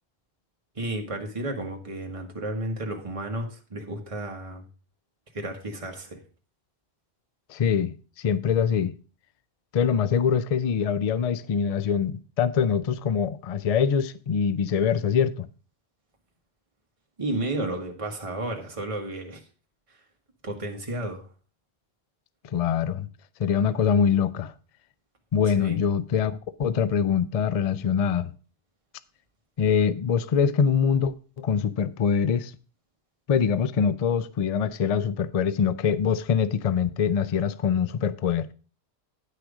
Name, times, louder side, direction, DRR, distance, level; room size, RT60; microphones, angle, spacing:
voice 1, 0.7-4.6 5.3-6.2 17.2-19.4 20.4-21.3 25.6-25.8, right 1 dB, 30° right, 1.5 m, -32 dB
voice 2, 7.5-8.9 9.7-15.5 22.5-23.1 23.4-24.5 25.3-28.3 29.6-32.5 33.3-38.5, left 7 dB, 45° left, 0.5 m, -24 dB
9.9 x 6.2 x 4.9 m
omnidirectional pair, 1.1 m